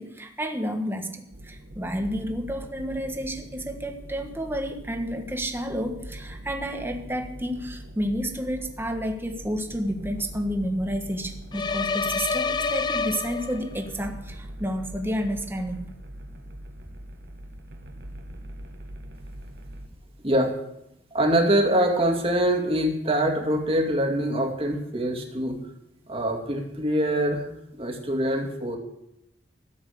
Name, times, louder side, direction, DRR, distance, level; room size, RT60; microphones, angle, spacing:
voice 1, 0.0-15.9, equal, 15° right, 4 dB, 1.4 m, -30 dB
sound 1, 1.3-19.9, right 1 dB, 65° right, 1.5 m, -42 dB
sound 2, 11.5-13.9, left 5 dB, 25° left, 0.4 m, -28 dB
voice 2, 20.2-20.5 21.1-25.6 26.1-27.4 27.7-28.8, right 1 dB, 30° right, 3 dB, 2.3 m, -24 dB
13.0 x 7.8 x 8.5 m, 0.84 s
head